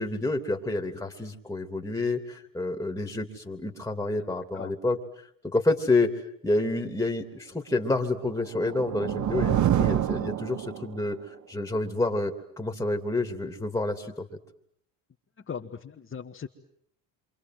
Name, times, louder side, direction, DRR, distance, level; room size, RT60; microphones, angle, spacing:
voice 1, 0.0-5.0 5.4-6.1 6.4-11.2 11.5-14.3, left 2 dB, 5° left, 4 dB, 3.0 m, -28 dB
sound 1, 8.3-11.1, right 11 dB, 45° right, 1.3 m, -27 dB
voice 2, 15.5-16.5, left 7 dB, 30° left, 0 dB, 1.8 m, -38 dB
27.5 x 25.0 x 7.9 m, 0.67 s
hypercardioid pair, 75°, 40 cm